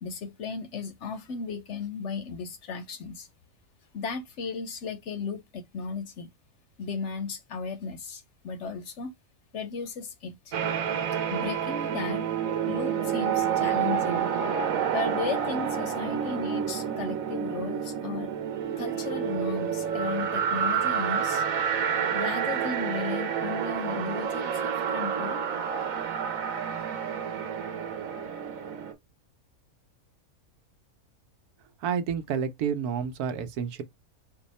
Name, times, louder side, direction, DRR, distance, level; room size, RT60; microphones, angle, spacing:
voice 1, 0.0-3.3 3.9-6.3 6.8-9.1 9.5-10.5 11.3-12.3 12.7-14.2 14.9-18.3 18.8-21.4 22.1-25.4, left 5 dB, 60° left, 0.8 m, -35 dB
sound 1, 10.5-28.9, right 8 dB, 65° right, 1.2 m, -29 dB
voice 2, 31.8-33.8, right 7 dB, 90° right, 1.2 m, -29 dB
4.8 x 2.2 x 4.0 m
omnidirectional pair, 1.6 m